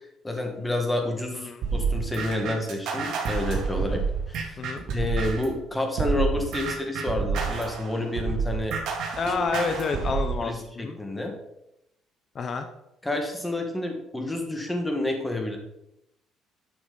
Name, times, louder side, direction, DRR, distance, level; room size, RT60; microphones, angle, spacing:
voice 1, 0.2-4.0 4.3-4.6 4.9-8.8 10.4-11.3 13.0-15.6, left 2 dB, 10° left, 2 dB, 1.6 m, -29 dB
sound 1, 1.6-5.5 6.0-10.3, right 5 dB, 60° right, 2.2 m, -28 dB
voice 2, 9.2-11.0 12.3-12.7, left 4 dB, 35° left, 6 dB, 0.7 m, -29 dB
11.0 x 6.0 x 3.9 m, 0.84 s
cardioid pair, 150°, 0 cm